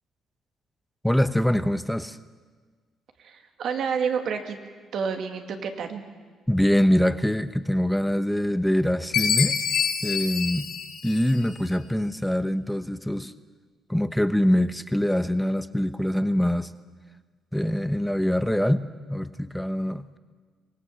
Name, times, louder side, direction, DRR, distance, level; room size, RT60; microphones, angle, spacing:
voice 1, 1.0-2.2 6.5-9.6 10.0-10.7 11.0-13.3 13.9-16.7 17.5-20.2, equal, 5° left, 11 dB, 0.9 m, -24 dB
voice 2, 3.2-4.6 4.9-6.0, right 6 dB, 70° right, 5 dB, 2.4 m, -29 dB
Chime, 9.1-11.7, left 7 dB, 70° left, 4.0 m, -27 dB
24.0 x 19.0 x 7.7 m, 1.5 s
cardioid pair, 90°, 0 cm